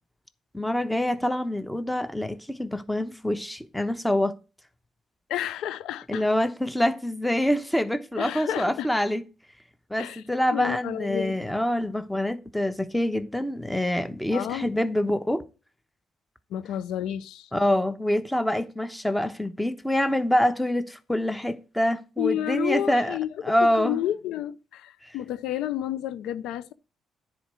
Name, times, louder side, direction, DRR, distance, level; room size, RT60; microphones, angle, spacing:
voice 1, 0.5-4.3 6.1-9.2 9.9-15.4 17.5-23.2 23.4-24.0 25.0-25.1, left 1 dB, 5° left, 1.0 m, -26 dB
voice 2, 5.3-6.3 8.2-8.9 10.0-10.2 10.5-11.4 14.3-14.7 16.5-17.5 22.2-26.7, left 12 dB, 90° left, 0.5 m, -30 dB
10.0 x 4.5 x 6.3 m
cardioid pair, 90°, 0 cm